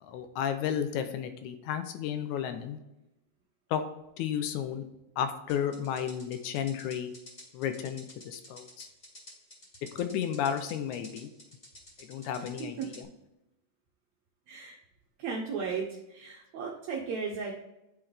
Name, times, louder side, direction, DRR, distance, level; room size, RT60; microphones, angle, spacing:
voice 1, 0.0-2.8 3.7-3.8 4.2-4.9 5.2-7.1 7.5-8.9 10.0-11.3 12.1-13.1, left 9 dB, 85° left, 8 dB, 2.0 m, -33 dB
sound 1, 5.5-13.0, equal, 20° left, 2.0 m, -51 dB
voice 2, 15.2-17.5, right 5 dB, 75° right, -2 dB, 1.9 m, -35 dB
10.5 x 3.8 x 3.3 m, 0.93 s
omnidirectional pair, 3.3 m